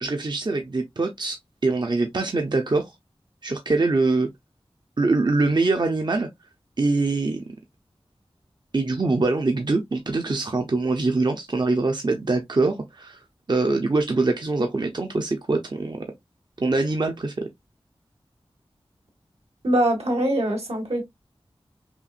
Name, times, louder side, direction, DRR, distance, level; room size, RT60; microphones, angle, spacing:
voice 1, 0.0-2.9 3.4-4.3 5.0-6.3 6.8-7.5 8.7-13.2 13.5-16.1 16.6-17.5, right 3 dB, 45° right, 0.7 m, -23 dB
voice 2, 19.6-21.0, right 1 dB, 85° right, 1.8 m, -22 dB
5.7 x 2.4 x 2.4 m
wide cardioid pair, 70°, 10 cm